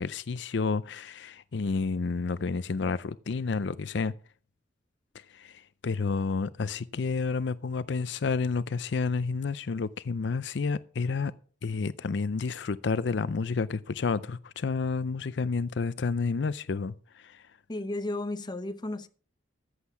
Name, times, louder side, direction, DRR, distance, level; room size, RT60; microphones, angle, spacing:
voice 1, 0.0-4.1 5.3-11.3 11.6-17.4, left 4 dB, 60° left, 0.5 m, -30 dB
voice 2, 17.7-19.1, left 2 dB, 20° left, 0.8 m, -33 dB
14.0 x 8.1 x 5.9 m
head